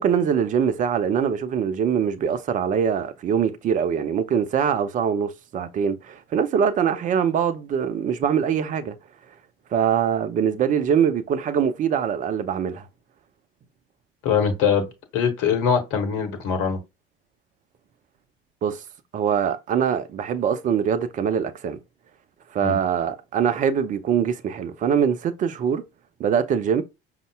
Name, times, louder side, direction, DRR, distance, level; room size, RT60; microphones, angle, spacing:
voice 1, 0.0-9.0 9.7-12.9 18.6-18.8 19.1-21.8 22.5-25.8 26.2-26.8, right 7 dB, 25° right, 0.4 m, -23 dB
voice 2, 14.2-14.9 15.1-16.8 22.6-22.8, left 7 dB, 55° left, 1.0 m, -22 dB
5.2 x 2.1 x 2.2 m
figure-of-eight pair, 70°, 30 cm